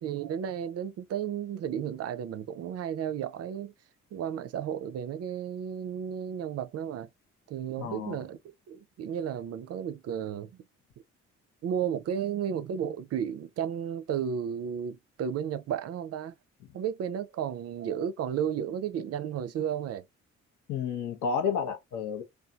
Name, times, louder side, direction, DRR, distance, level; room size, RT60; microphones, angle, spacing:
voice 1, 0.0-3.7 4.1-7.1 7.5-8.4 8.7-10.5 11.6-16.3 16.7-20.0, right 8 dB, 55° right, 0.4 m, -33 dB
voice 2, 7.8-8.2 20.7-22.2, left 6 dB, 75° left, 0.9 m, -31 dB
2.6 x 2.3 x 2.3 m
cardioid pair, 90°, 30 cm